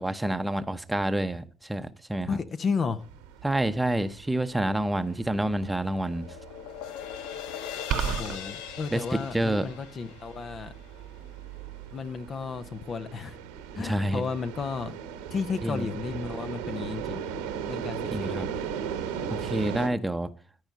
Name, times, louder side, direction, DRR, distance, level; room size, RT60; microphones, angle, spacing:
voice 1, 0.0-2.4 3.4-6.3 8.9-9.7 13.8-14.2 15.6-15.9 18.1-18.5 19.3-20.3, right 1 dB, 10° right, 0.8 m, -28 dB
voice 2, 2.3-3.0 8.0-10.7 11.9-13.4 13.7-15.0 15.3-17.2 17.7-18.6, left 5 dB, 45° left, 0.9 m, -33 dB
sound 1, 3.0-19.9, right 8 dB, 90° right, 1.2 m, -39 dB
sound 2, 5.2-11.6, left 9 dB, 80° left, 0.7 m, -41 dB
sound 3, 7.9-8.4, right 9 dB, 70° right, 0.8 m, -27 dB
13.5 x 4.8 x 5.5 m
hypercardioid pair, 60°, 0 cm